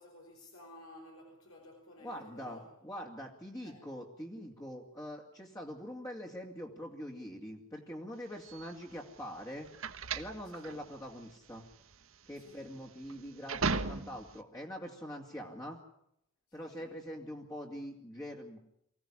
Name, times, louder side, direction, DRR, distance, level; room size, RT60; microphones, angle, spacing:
voice 1, 0.0-2.6 3.6-3.9 10.5-10.8 12.4-12.7 16.5-17.0, left 1 dB, 75° left, 0 dB, 4.8 m, -54 dB
voice 2, 2.0-9.7 10.1-11.6 12.3-15.8 16.5-18.6, equal, 15° left, -1 dB, 2.5 m, -44 dB
sound 1, 8.4-14.4, right 4 dB, 65° right, 1.4 m, -37 dB
24.0 x 16.5 x 10.0 m, 0.78 s
head